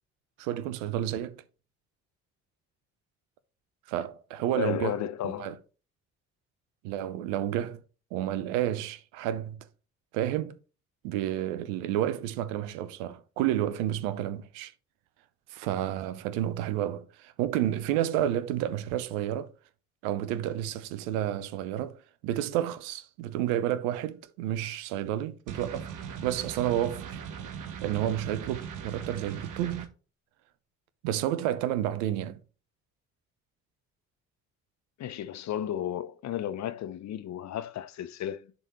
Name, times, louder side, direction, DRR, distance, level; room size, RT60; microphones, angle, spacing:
voice 1, 0.4-1.4 3.9-5.0 5.2-5.6 6.8-7.8 8.1-9.7 10.1-10.6 11.0-14.7 15.5-19.5 20.0-25.9 26.2-27.2 27.8-29.9 31.0-32.4, right 12 dB, 75° right, 0.7 m, -30 dB
voice 2, 4.5-5.5 35.0-38.5, left 11 dB, 50° left, 0.7 m, -33 dB
sound 1, 25.5-29.9, right 7 dB, 55° right, 1.2 m, -39 dB
11.0 x 3.7 x 3.1 m
hypercardioid pair, 45°, 37 cm